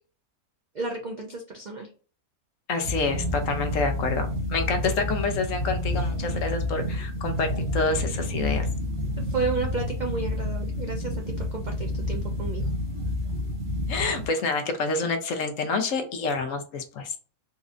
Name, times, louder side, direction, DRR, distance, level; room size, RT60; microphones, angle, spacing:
voice 1, 0.7-1.9 9.2-12.7, right 3 dB, 85° right, 2 dB, 0.4 m, -32 dB
voice 2, 2.7-8.7 13.9-17.1, left 3 dB, 70° left, 6 dB, 1.0 m, -28 dB
sound 1, 2.8-14.3, left 1 dB, 35° right, 1.2 m, -29 dB
4.1 x 2.5 x 2.4 m, 0.38 s
omnidirectional pair, 1.5 m